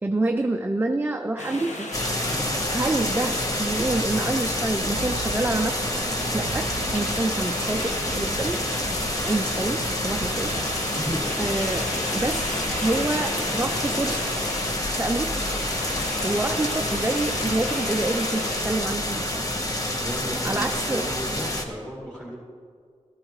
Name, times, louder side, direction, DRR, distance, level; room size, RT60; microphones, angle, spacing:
voice 1, 0.0-1.9 2.7-5.9 6.3-8.6 9.2-10.5 11.4-14.3 15.0-15.3 16.2-19.4 20.4-21.1, right 2 dB, 15° right, 4 dB, 0.5 m, -27 dB
sound 1, 1.4-18.6, left 2 dB, 75° left, 1.3 m, -35 dB
sound 2, 1.9-21.6, left 1 dB, 30° left, 1.2 m, -28 dB
sound 3, 4.7-11.2, right 4 dB, 70° right, 0.6 m, -39 dB
voice 2, 10.9-11.3 20.0-22.4, equal, 10° left, -7 dB, 2.2 m, -34 dB
14.0 x 12.5 x 3.1 m, 2.1 s
wide cardioid pair, 100°, 12 cm